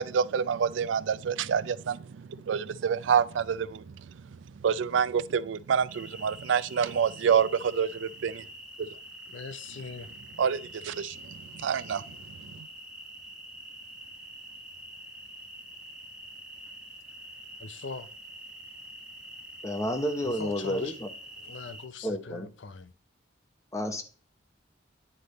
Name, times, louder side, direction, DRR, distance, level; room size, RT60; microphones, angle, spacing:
voice 1, 0.0-8.4 8.8-8.9 10.4-12.7, right 7 dB, 90° right, 0.4 m, -28 dB
sound 1, 5.9-21.9, right 1 dB, 5° right, 1.0 m, -46 dB
voice 2, 9.3-10.1 17.6-18.1 20.2-21.0 21.4-22.9, left 4 dB, 90° left, 0.6 m, -41 dB
voice 3, 19.6-21.1 22.0-22.5 23.7-24.0, equal, 15° left, 0.9 m, -30 dB
9.7 x 3.4 x 4.0 m
head